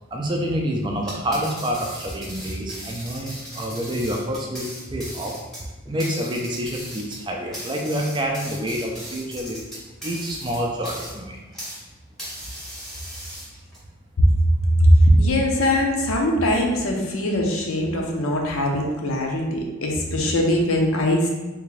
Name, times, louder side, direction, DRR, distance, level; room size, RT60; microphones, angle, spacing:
voice 1, 0.1-5.3 5.9-9.6 10.0-11.4, equal, 20° right, 0 dB, 0.4 m, -27 dB
sound 1, 1.0-11.8 12.2-13.8, equal, ahead, 0.8 m, -38 dB
voice 2, 14.8-21.3, equal, 75° left, 0 dB, 0.6 m, -20 dB
3.6 x 2.5 x 3.1 m, 1.2 s
head